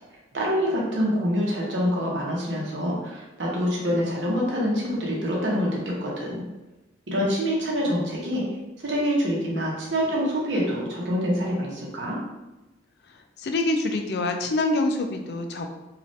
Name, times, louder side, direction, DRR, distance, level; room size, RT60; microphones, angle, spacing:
voice 1, 0.3-6.4 7.1-8.4 8.8-12.2, equal, 85° right, -3 dB, 0.8 m, -26 dB
voice 2, 13.4-15.7, left 2 dB, 65° left, 5 dB, 0.3 m, -25 dB
3.1 x 2.4 x 2.7 m, 1.1 s
head